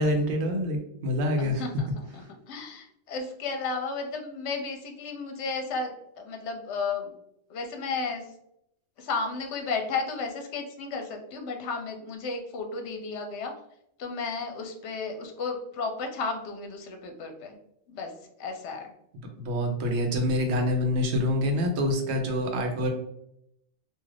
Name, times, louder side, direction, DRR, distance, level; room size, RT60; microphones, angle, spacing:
voice 1, 0.0-1.6 19.4-22.9, left 1 dB, 75° right, 3 dB, 0.9 m, -26 dB
voice 2, 1.4-7.1 7.5-8.3 9.0-13.5 14.0-17.6 17.9-18.1 18.4-18.9, left 4 dB, 75° left, 4 dB, 0.9 m, -33 dB
2.5 x 2.4 x 3.2 m, 0.76 s
omnidirectional pair, 1.2 m